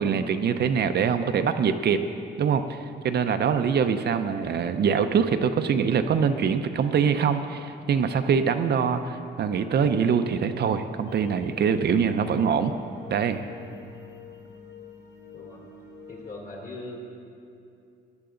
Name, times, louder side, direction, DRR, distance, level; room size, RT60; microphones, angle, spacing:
voice 1, 0.0-2.0 2.4-12.7 13.1-13.4, right 6 dB, 55° right, 8 dB, 0.7 m, -24 dB
sound 1, 11.1-16.3, left 6 dB, 65° left, 1.6 m, -46 dB
voice 2, 13.8-14.1 15.3-15.6 16.1-17.1, left 1 dB, 45° left, -3 dB, 3.5 m, -41 dB
15.5 x 10.5 x 3.9 m, 2.5 s
cardioid pair, 90°, 20 cm